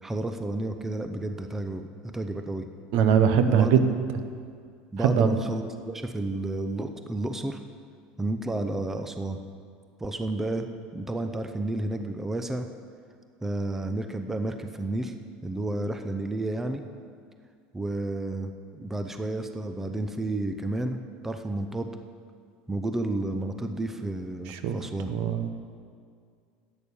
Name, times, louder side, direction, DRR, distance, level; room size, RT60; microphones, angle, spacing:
voice 1, 0.0-2.7 3.5-3.9 4.9-7.6 8.2-9.4 10.0-10.7 10.9-12.7 13.4-15.1 15.4-16.8 17.7-21.9 22.7-25.1, right 2 dB, 10° right, 7 dB, 0.7 m, -31 dB
voice 2, 2.9-3.8 5.0-5.3 24.5-24.8 25.1-25.5, right 8 dB, 65° right, 9 dB, 1.0 m, -21 dB
11.0 x 8.8 x 7.0 m, 2.2 s
supercardioid pair, 130°, 4 cm